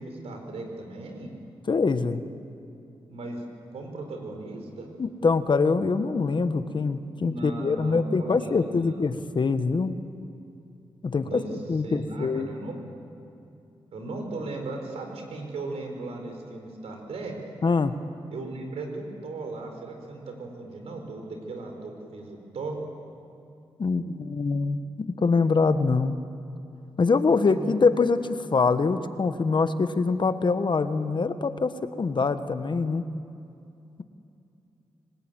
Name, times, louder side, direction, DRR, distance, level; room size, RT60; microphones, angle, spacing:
voice 1, 0.0-1.3 3.1-4.9 7.2-9.0 11.2-11.5 11.8-12.8 13.9-17.4 18.3-22.8 27.5-27.7, right 2 dB, 90° right, 3 dB, 4.3 m, -37 dB
voice 2, 1.7-2.2 5.0-9.9 11.0-12.5 17.6-18.0 23.8-26.2 27.0-33.0, left 4 dB, 50° left, 11 dB, 1.3 m, -24 dB
25.5 x 19.5 x 9.1 m, 2.7 s
cardioid pair, 70°, 10 cm